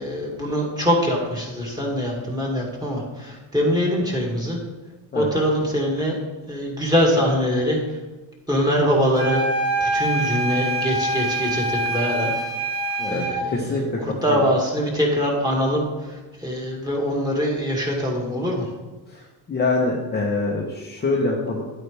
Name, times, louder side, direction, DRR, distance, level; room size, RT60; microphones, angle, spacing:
voice 1, 0.0-4.6 5.1-6.2 6.5-8.0 8.5-9.5 9.8-12.3 13.1-18.7, equal, 10° right, -2 dB, 2.3 m, -23 dB
sound 1, 9.1-13.4, right 2 dB, 85° right, 2.7 m, -25 dB
voice 2, 13.0-14.4 19.1-21.6, left 3 dB, 20° left, -2 dB, 1.1 m, -25 dB
11.0 x 8.9 x 3.5 m, 1.2 s
cardioid pair, 140°, 47 cm